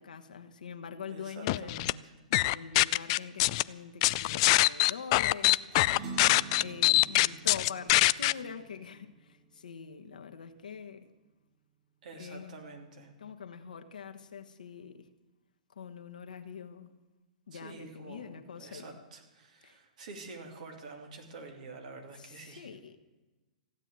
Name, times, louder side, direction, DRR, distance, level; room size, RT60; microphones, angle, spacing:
voice 1, 0.0-1.8 2.3-11.1 12.2-12.6 13.2-15.1 15.7-16.9 17.5-19.0 19.6-19.8 22.2-23.0, left 6 dB, 80° left, 6 dB, 1.3 m, -44 dB
voice 2, 1.1-2.1 12.0-13.1 17.5-22.7, right 3 dB, 65° right, 3 dB, 3.0 m, -48 dB
sound 1, 1.5-1.9 2.3-3.6 4.0-8.3, left 20 dB, 45° left, 0.4 m, -23 dB
sound 2, 5.7-10.4, right 5 dB, 45° right, 5.8 m, -46 dB
15.5 x 8.9 x 8.9 m, 1.2 s
hypercardioid pair, 120°, 4 cm